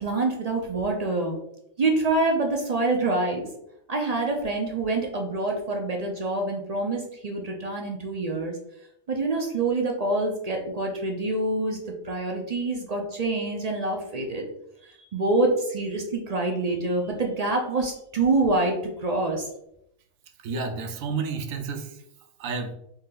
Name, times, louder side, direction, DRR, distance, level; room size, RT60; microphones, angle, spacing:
voice 1, 0.0-1.4 1.8-3.5 3.9-8.6 9.1-11.8 12.0-14.4 14.8-19.5, right 2 dB, 55° right, 1 dB, 0.4 m, -26 dB
voice 2, 20.4-22.0 22.4-22.7, right 4 dB, 70° right, 6 dB, 1.0 m, -31 dB
4.4 x 2.7 x 3.8 m, 0.79 s
omnidirectional pair, 1.5 m